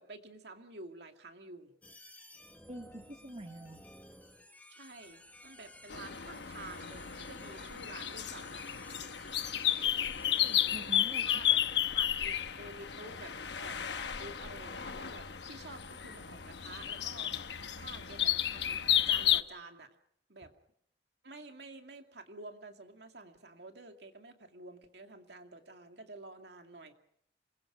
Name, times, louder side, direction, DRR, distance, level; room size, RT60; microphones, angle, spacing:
voice 1, 0.0-1.7 4.7-8.6 11.2-11.6 11.9-17.3 17.8-19.9 20.3-20.5 21.2-26.9, right 2 dB, 60° right, 5 dB, 2.4 m, -50 dB
sound 1, 1.8-11.2, left 1 dB, 10° left, 1.5 m, -55 dB
voice 2, 2.7-3.8 10.2-11.4, right 1 dB, 35° right, 4 dB, 1.6 m, -46 dB
sound 2, 5.9-19.4, left 10 dB, 70° left, 1.1 m, -33 dB
27.0 x 21.5 x 6.2 m, 0.68 s
head